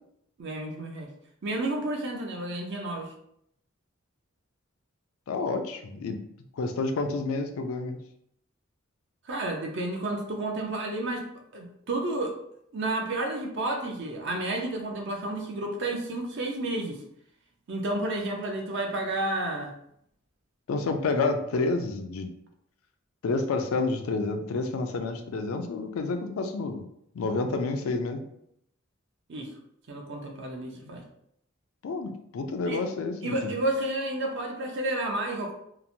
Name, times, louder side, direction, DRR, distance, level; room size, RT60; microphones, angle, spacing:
voice 1, 0.4-1.1 1.4-3.1 9.3-11.3 11.5-12.4 12.7-17.0 17.7-19.7 29.3-29.5 29.9-31.0 32.7-32.8 33.2-35.5, right 2 dB, 60° right, 2 dB, 0.5 m, -31 dB
voice 2, 5.3-6.2 6.5-8.0 20.7-22.3 23.2-26.8 27.1-28.2 31.8-33.5, left 3 dB, 85° left, 6 dB, 0.4 m, -29 dB
2.9 x 2.1 x 2.6 m, 0.73 s
head